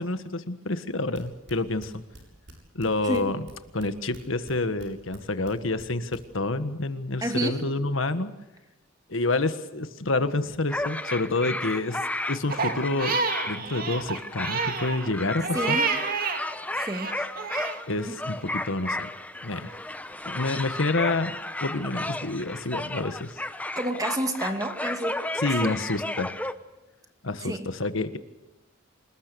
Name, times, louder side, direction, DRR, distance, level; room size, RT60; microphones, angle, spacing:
voice 1, 0.0-1.9 2.7-3.4 3.7-8.3 9.1-12.0 12.3-13.1 13.5-15.8 17.9-19.1 19.4-19.8 20.2-23.4 25.4-26.3 27.2-28.2, left 2 dB, 80° left, 10 dB, 1.5 m, -28 dB
sound 1, 1.1-2.9 3.1-4.9 5.1-6.2, right 1 dB, 60° right, 7.6 m, -47 dB
voice 2, 7.2-7.6 15.5-15.9 16.8-17.1 18.1-18.2 23.8-25.2 25.6-25.8 27.4-27.7, right 1 dB, 20° right, 6 dB, 2.2 m, -29 dB
sound 2, 10.7-26.5, left 1 dB, 10° left, 1.0 m, -33 dB
Crying sobbing, 12.5-16.4 16.8-17.8, right 5 dB, 45° right, 2.4 m, -29 dB
27.5 x 20.0 x 7.0 m, 1.0 s
head